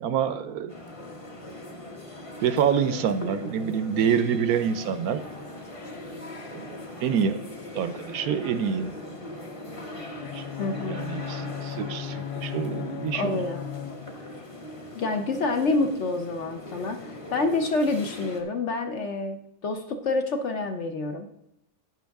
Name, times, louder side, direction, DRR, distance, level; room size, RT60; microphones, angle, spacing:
voice 1, 0.0-0.7 2.4-5.2 6.5-7.4 7.7-8.9 10.3-10.4 10.9-13.4, right 7 dB, 75° right, 12 dB, 1.0 m, -27 dB
sound 1, 0.7-18.4, left 1 dB, 25° left, 1.0 m, -40 dB
Bowed string instrument, 10.2-14.4, left 10 dB, 80° left, 1.1 m, -36 dB
voice 2, 10.6-11.0 13.1-13.6 14.9-21.3, left 3 dB, 55° left, 6 dB, 0.9 m, -27 dB
10.5 x 9.7 x 3.5 m, 0.81 s
omnidirectional pair, 1.7 m